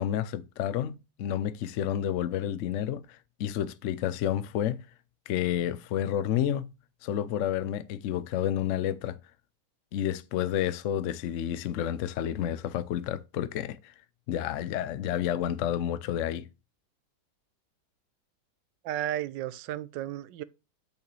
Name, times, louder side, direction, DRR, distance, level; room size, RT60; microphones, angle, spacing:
voice 1, 0.0-3.1 3.4-4.8 5.3-6.7 7.0-9.2 9.9-13.9 14.3-16.5, left 10 dB, 70° left, 0.7 m, -30 dB
voice 2, 18.8-20.4, right 12 dB, 85° right, 1.3 m, -33 dB
8.3 x 6.8 x 3.1 m
omnidirectional pair, 1.9 m